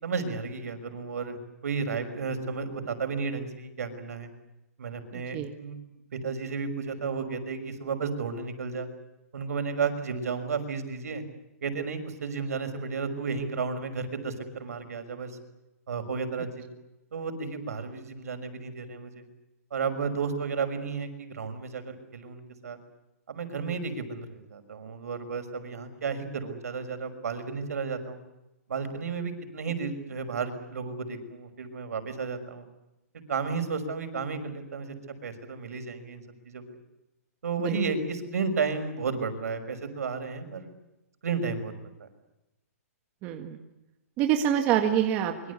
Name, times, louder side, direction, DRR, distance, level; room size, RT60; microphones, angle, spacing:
voice 1, 0.0-4.3 4.8-5.8 6.1-8.9 9.3-11.2 11.6-15.3 15.9-16.7 17.1-19.2 19.7-22.8 23.3-28.2 28.7-32.7 33.3-35.0 35.2-36.6 37.4-40.7 41.2-41.7 42.0-42.1, right 5 dB, 75° right, 8 dB, 6.0 m, -33 dB
voice 2, 5.1-5.5 37.6-37.8 43.2-43.6 44.2-45.3, right 10 dB, 20° right, 5 dB, 1.7 m, -26 dB
25.5 x 24.0 x 8.4 m, 0.95 s
hypercardioid pair, 175°, 8 cm